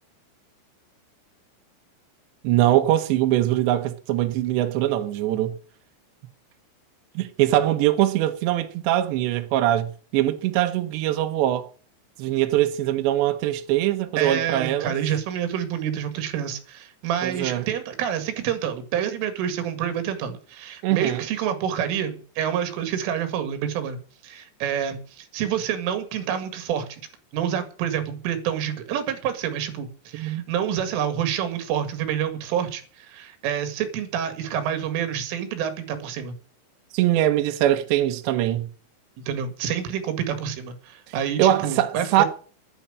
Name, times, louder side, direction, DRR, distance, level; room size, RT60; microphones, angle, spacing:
voice 1, 2.4-5.5 7.2-11.7 12.2-15.0 17.2-17.7 20.8-21.2 30.1-30.5 36.9-38.7 41.4-42.3, right 13 dB, 70° right, 3.2 m, -22 dB
voice 2, 14.2-24.0 24.2-27.0 27.3-36.4 39.3-42.3, right 9 dB, 90° right, 4.5 m, -28 dB
11.5 x 10.5 x 8.7 m
omnidirectional pair, 5.5 m